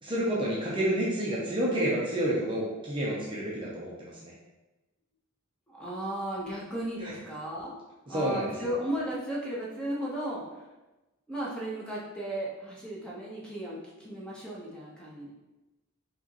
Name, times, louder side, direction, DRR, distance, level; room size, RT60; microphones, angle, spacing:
voice 1, 0.0-4.3 7.0-7.1 8.1-8.7, right 1 dB, 25° right, -5 dB, 0.6 m, -29 dB
voice 2, 5.7-7.8 8.1-10.7 11.3-15.3, right 1 dB, 5° left, -6 dB, 0.9 m, -35 dB
4.8 x 3.0 x 2.9 m, 1.1 s
head